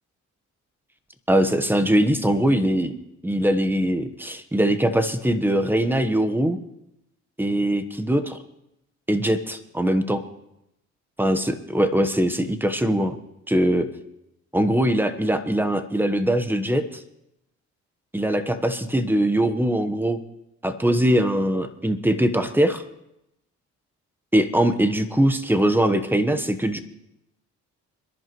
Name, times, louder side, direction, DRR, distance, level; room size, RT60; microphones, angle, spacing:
voice 1, 1.3-3.0 3.2-6.6 7.4-8.4 9.1-10.2 11.2-13.1 13.5-13.9 14.5-16.8 18.1-20.2 20.6-22.8 24.3-26.8, right 1 dB, 5° right, 10 dB, 1.1 m, -21 dB
27.0 x 11.0 x 3.1 m, 0.84 s
cardioid pair, 90°, 30 cm